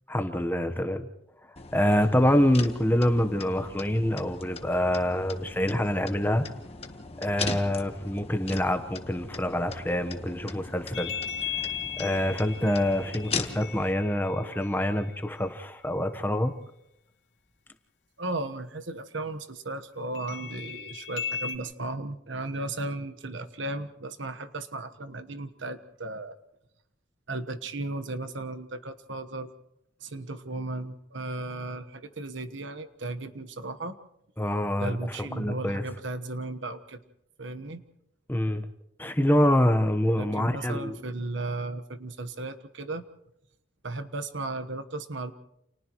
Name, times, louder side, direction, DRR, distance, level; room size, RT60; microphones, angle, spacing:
voice 1, 0.1-1.0 1.7-6.5 7.2-11.1 12.0-16.5 34.4-35.8 38.3-38.6 39.0-41.0, left 1 dB, 10° left, 9 dB, 1.1 m, -26 dB
sound 1, 1.6-13.9, left 4 dB, 30° left, 1.3 m, -39 dB
sound 2, 10.9-15.5 20.1-21.6, left 8 dB, 80° left, 2.3 m, -37 dB
voice 2, 18.2-26.4 27.3-29.5 30.0-34.0 34.8-37.0 37.4-37.8 40.2-43.0 43.8-45.3, right 2 dB, 80° right, 11 dB, 1.3 m, -35 dB
29.5 x 29.0 x 3.1 m, 0.82 s
head